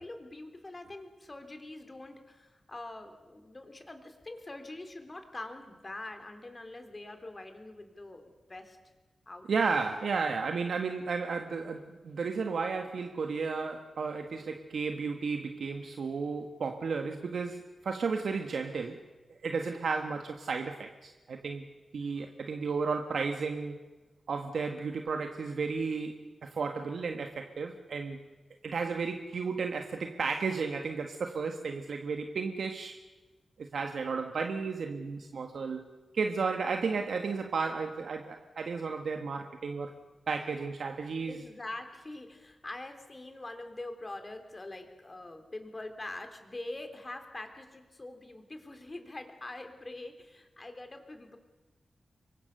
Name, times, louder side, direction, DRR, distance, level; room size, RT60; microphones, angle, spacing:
voice 1, 0.0-8.8 9.3-9.7 41.3-51.4, left 2 dB, 30° left, 3.6 m, -44 dB
voice 2, 9.5-19.0 19.3-21.6 21.9-23.8 24.3-28.2 28.6-33.0 33.6-35.9 36.1-39.9 40.3-41.4, right 4 dB, 80° right, 1.5 m, -33 dB
27.0 x 23.5 x 6.8 m
wide cardioid pair, 80°, 0 cm